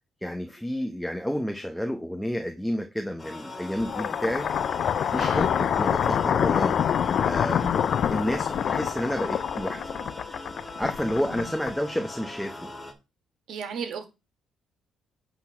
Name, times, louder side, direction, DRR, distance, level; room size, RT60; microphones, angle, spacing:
voice 1, 0.2-4.5 5.1-6.8 7.2-9.9 10.6-12.7, equal, ahead, 0.9 m, -30 dB
sound 1, 3.2-12.9, left 3 dB, 20° left, 2.1 m, -39 dB
sound 2, 3.8-12.1, left 8 dB, 60° left, 0.4 m, -26 dB
voice 2, 5.2-5.5 13.5-14.1, right 6 dB, 75° right, 2.0 m, -34 dB
8.6 x 4.0 x 5.8 m
cardioid pair, 90°, 0 cm